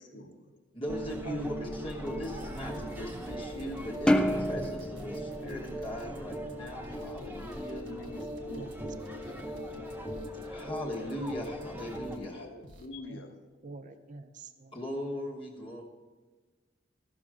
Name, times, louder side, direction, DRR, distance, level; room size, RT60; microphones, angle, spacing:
voice 1, 0.0-0.6 7.8-9.5 12.3-13.4, left 2 dB, 85° left, 5 dB, 1.1 m, -47 dB
voice 2, 0.7-7.9 10.4-12.4 14.7-15.8, left 1 dB, 30° left, -3 dB, 1.2 m, -39 dB
sound 1, 0.9-12.2, equal, 10° right, 0.7 m, -39 dB
sound 2, 1.9-12.3 12.6-12.9, right 1 dB, 85° right, 1.2 m, -56 dB
sound 3, 4.1-6.6, equal, 5° left, 0.3 m, -29 dB
voice 3, 13.6-14.8, right 3 dB, 45° right, 9 dB, 0.6 m, -45 dB
13.5 x 6.0 x 4.9 m, 1.3 s
head